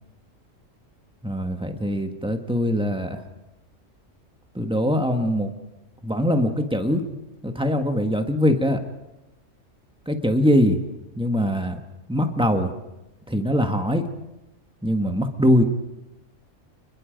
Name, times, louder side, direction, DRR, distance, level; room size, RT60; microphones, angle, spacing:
voice 1, 1.2-3.2 4.5-5.5 6.0-7.1 7.4-8.8 10.1-10.8 11.1-11.8 12.1-12.7 13.3-14.1 14.8-15.6, equal, 5° right, 5 dB, 1.5 m, -22 dB
29.0 x 21.0 x 5.3 m, 0.96 s
omnidirectional pair, 1.3 m